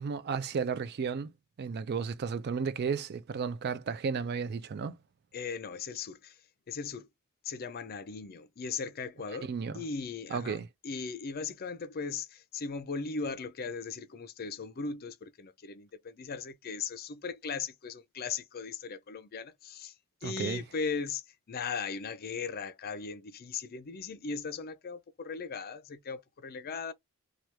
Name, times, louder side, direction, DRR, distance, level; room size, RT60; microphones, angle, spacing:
voice 1, 0.0-1.3 1.6-5.0 9.5-9.8 10.3-10.7 20.2-20.6, right 6 dB, 45° right, 0.3 m, -33 dB
voice 2, 5.3-7.1 7.4-20.0 20.2-26.9, left 5 dB, 45° left, 0.5 m, -38 dB
2.9 x 2.3 x 3.3 m
head